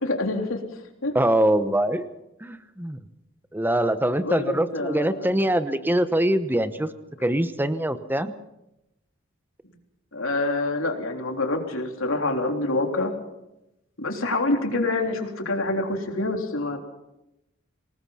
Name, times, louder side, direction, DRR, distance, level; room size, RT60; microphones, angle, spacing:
voice 1, 0.0-0.6 1.0-1.1 4.2-5.3 10.1-13.1 14.0-16.8, left 2 dB, 80° left, 3 dB, 3.5 m, -26 dB
voice 2, 1.1-2.1 2.4-3.0 3.5-6.9 7.2-8.3, right 1 dB, 10° right, 11 dB, 1.0 m, -23 dB
26.0 x 19.0 x 5.8 m, 0.89 s
head